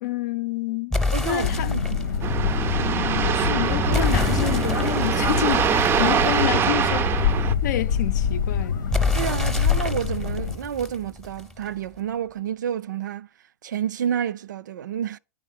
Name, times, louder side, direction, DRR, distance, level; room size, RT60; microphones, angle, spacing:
voice 1, 0.0-1.7 2.7-7.3 7.6-9.0, left 15 dB, 70° left, 0.6 m, -29 dB
sound 1, 0.9-2.2 3.9-6.6 8.9-11.6, left 3 dB, 5° left, 0.8 m, -28 dB
voice 2, 1.1-2.0 9.1-13.3 13.6-15.2, right 9 dB, 85° right, 0.4 m, -29 dB
sound 2, 1.4-10.5, left 7 dB, 90° left, 1.0 m, -25 dB
sound 3, 2.2-7.5, right 8 dB, 25° right, 0.4 m, -24 dB
9.8 x 3.7 x 5.6 m
hypercardioid pair, 110°, 10 cm